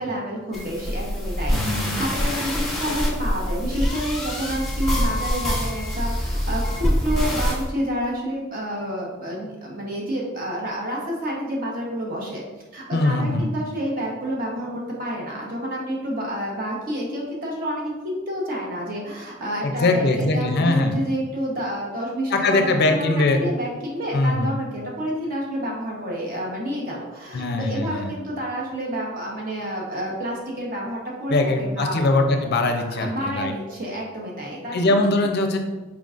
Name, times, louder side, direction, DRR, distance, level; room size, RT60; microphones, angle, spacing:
voice 1, 0.0-12.4 12.7-32.0 33.0-35.0, equal, 40° right, -3 dB, 1.0 m, -29 dB
sound 1, 0.5-7.6, equal, ahead, 1.0 m, -25 dB
voice 2, 1.5-2.1 12.9-13.5 19.6-20.9 22.3-23.4 24.1-24.5 27.3-28.1 31.3-33.5 34.7-35.6, left 2 dB, 50° left, 5 dB, 0.5 m, -21 dB
4.6 x 3.7 x 2.5 m, 1.2 s
head